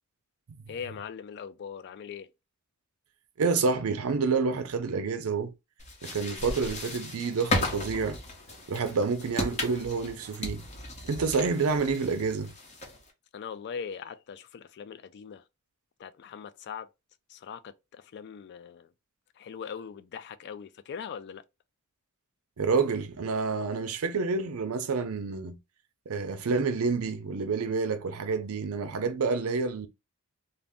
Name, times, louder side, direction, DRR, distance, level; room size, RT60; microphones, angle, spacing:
voice 1, 0.7-2.3 13.3-15.4 16.0-16.9 17.3-18.9 19.4-21.4, left 7 dB, 50° left, 0.3 m, -41 dB
voice 2, 3.4-5.5 6.0-8.2 8.7-10.6 11.0-12.5 22.6-25.6 26.1-29.9, right 4 dB, 75° right, 0.5 m, -28 dB
sound 1, 5.8-13.1, left 2 dB, 30° left, 0.8 m, -35 dB
2.5 x 2.0 x 3.4 m
head